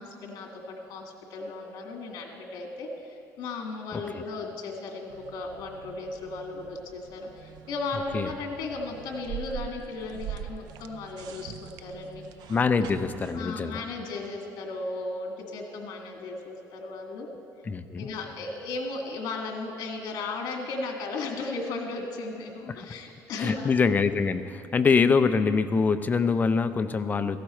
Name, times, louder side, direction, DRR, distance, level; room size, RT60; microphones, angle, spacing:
voice 1, 0.0-12.2 12.8-13.0 13.3-17.3 17.9-23.7 24.8-24.9, left 3 dB, 65° left, 2 dB, 2.1 m, -36 dB
voice 2, 3.9-4.2 8.1-8.3 12.5-13.8 17.7-18.1 23.4-27.4, left 5 dB, 25° left, 10 dB, 0.6 m, -24 dB
sound 1, 5.1-13.4, right 9 dB, 70° right, 0.5 m, -43 dB
16.5 x 15.0 x 4.4 m, 2.6 s
cardioid pair, 140°, 7 cm